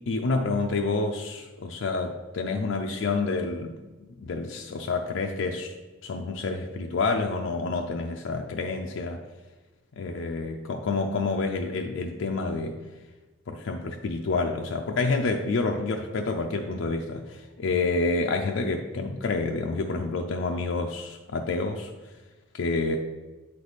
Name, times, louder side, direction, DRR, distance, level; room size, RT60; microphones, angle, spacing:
voice 1, 0.1-5.7 6.0-9.2 10.0-12.8 13.5-21.9 22.5-23.0, left 3 dB, 75° left, 2 dB, 0.4 m, -28 dB
7.9 x 3.3 x 4.0 m, 1.2 s
head